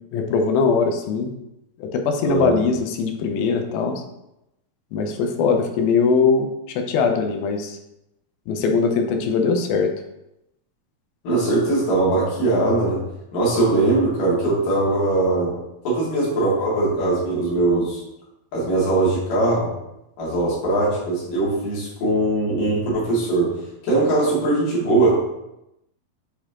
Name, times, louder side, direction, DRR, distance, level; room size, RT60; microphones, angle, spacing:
voice 1, 0.1-1.3 1.8-4.0 4.9-7.8 8.5-9.9, left 5 dB, 85° left, 4 dB, 2.6 m, -21 dB
voice 2, 2.2-2.6 11.2-13.0 13.3-15.6 15.8-18.0 18.5-19.7 20.2-23.6 23.8-25.1, right 2 dB, 65° left, -8 dB, 3.9 m, -20 dB
7.6 x 4.3 x 2.9 m, 0.87 s
omnidirectional pair, 4.2 m